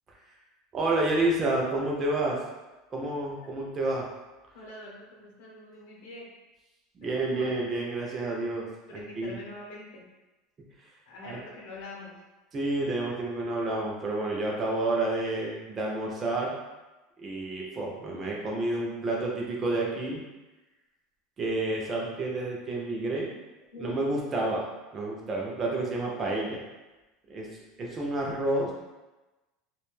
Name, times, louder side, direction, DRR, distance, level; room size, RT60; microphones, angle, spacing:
voice 1, 0.7-2.4 2.9-4.1 7.0-8.7 8.9-9.4 11.2-11.4 12.5-16.5 17.2-20.2 21.4-23.3 23.8-26.6 27.3-27.5 27.8-28.7, right 2 dB, 20° right, -2 dB, 0.3 m, -29 dB
voice 2, 4.5-6.3 7.0-7.5 8.9-10.1 11.1-12.2 23.7-24.0, left 2 dB, 65° left, -3 dB, 0.7 m, -44 dB
2.4 x 2.2 x 3.0 m, 1.1 s
cardioid pair, 180°, 0 cm